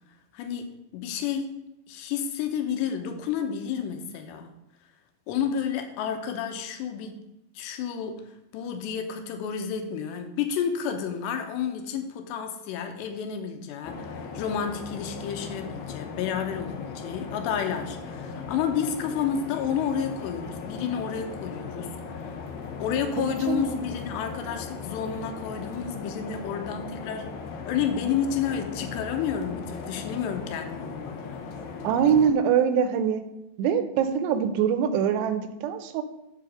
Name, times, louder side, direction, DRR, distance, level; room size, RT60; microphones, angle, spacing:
voice 1, 0.3-1.6 1.9-4.6 5.3-7.2 7.6-8.2 8.5-21.9 22.2-22.4 22.8-27.4 27.7-31.4, left 7 dB, 85° left, 6 dB, 3.1 m, -30 dB
sound 1, 13.8-32.3, left 5 dB, 70° left, 2.4 m, -38 dB
voice 2, 23.5-23.8 31.8-33.2 33.6-36.0, right 8 dB, 85° right, 10 dB, 2.8 m, -23 dB
7.7 x 5.0 x 6.3 m, 0.88 s
omnidirectional pair, 4.8 m